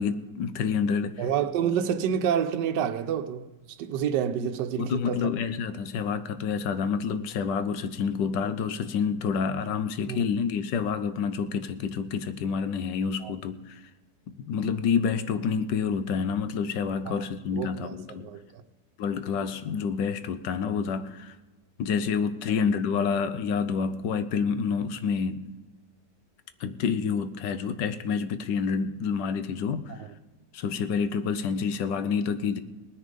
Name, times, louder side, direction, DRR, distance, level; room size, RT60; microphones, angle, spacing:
voice 1, 0.0-1.2 4.7-13.8 14.3-18.3 19.0-21.3 21.8-25.4 26.6-29.9 30.5-32.6, left 6 dB, 85° left, 1.4 m, -28 dB
voice 2, 1.2-5.3 10.1-10.2 13.2-13.3 17.1-17.2 17.5-18.6 29.9-30.1, right 8 dB, 85° right, 1.3 m, -29 dB
19.0 x 9.9 x 5.2 m
omnidirectional pair, 1.9 m